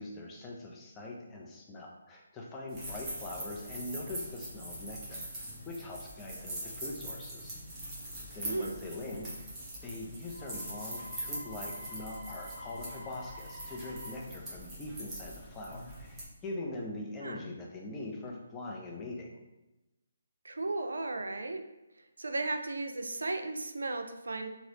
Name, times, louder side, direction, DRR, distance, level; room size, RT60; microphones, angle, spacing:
voice 1, 0.0-7.6 8.3-9.5 9.8-19.3, left 2 dB, 15° left, -2 dB, 0.5 m, -42 dB
sound 1, 2.7-16.3, right 1 dB, 15° right, 0.9 m, -43 dB
voice 2, 8.4-8.8 17.2-17.4 20.4-21.6 22.2-24.5, right 2 dB, 90° right, 6 dB, 0.4 m, -35 dB
sound 2, 10.2-14.1, left 1 dB, 55° right, 1.1 m, -49 dB
3.1 x 2.8 x 2.8 m, 0.99 s
hypercardioid pair, 160°, 0 cm